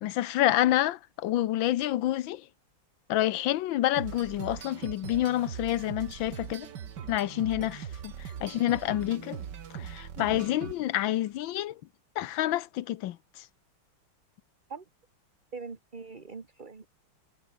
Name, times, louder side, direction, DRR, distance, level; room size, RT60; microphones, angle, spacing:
voice 1, 0.0-2.5 3.1-6.7 7.1-9.4 9.7-11.8 12.2-13.5, left 14 dB, 70° left, 1.4 m, -28 dB
sound 1, 3.9-11.1, right 8 dB, 55° right, 1.9 m, -41 dB
voice 2, 15.5-16.9, right 4 dB, 25° right, 1.6 m, -42 dB
omnidirectional pair, 2.3 m